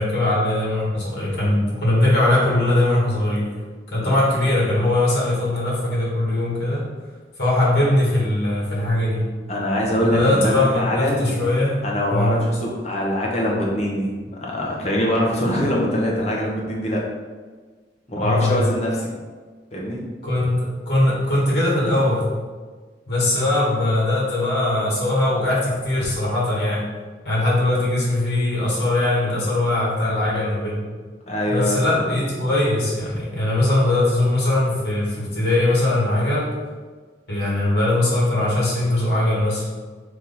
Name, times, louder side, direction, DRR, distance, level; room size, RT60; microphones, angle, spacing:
voice 1, 0.0-3.5 3.9-6.8 7.4-9.2 10.1-11.7 12.1-12.4 18.2-18.7 20.2-22.3 23.1-26.8 27.2-30.8 31.5-36.5 37.3-39.6, left 1 dB, 65° left, -6 dB, 1.5 m, -20 dB
voice 2, 9.5-11.3 11.8-14.1 14.4-17.0 18.1-19.1 19.7-20.0 31.3-31.9, left 1 dB, 40° left, -3 dB, 0.8 m, -23 dB
3.5 x 3.0 x 4.0 m, 1.4 s
head